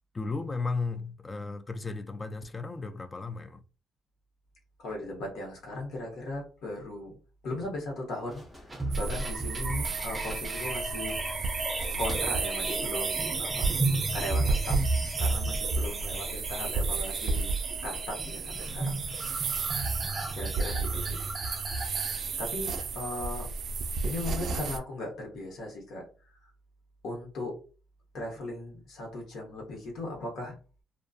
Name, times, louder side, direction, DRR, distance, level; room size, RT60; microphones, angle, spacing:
voice 1, 0.1-3.6 15.8-16.2 20.0-20.6, left 3 dB, 25° left, 0.3 m, -36 dB
voice 2, 4.8-7.2 7.4-8.4 9.0-11.2 12.0-13.7 14.1-14.8 15.2-17.5 17.8-19.4 20.0-21.2 22.4-23.5 24.0-26.0 27.0-27.5 28.1-30.5, left 1 dB, 75° left, 1.1 m, -38 dB
sound 1, 8.3-14.2, equal, 10° left, 0.9 m, -48 dB
sound 2, 8.7-22.8, right 2 dB, 20° right, 0.6 m, -34 dB
sound 3, 8.9-24.8, right 4 dB, 60° right, 0.3 m, -32 dB
2.5 x 2.3 x 2.3 m
cardioid pair, 90°, 0 cm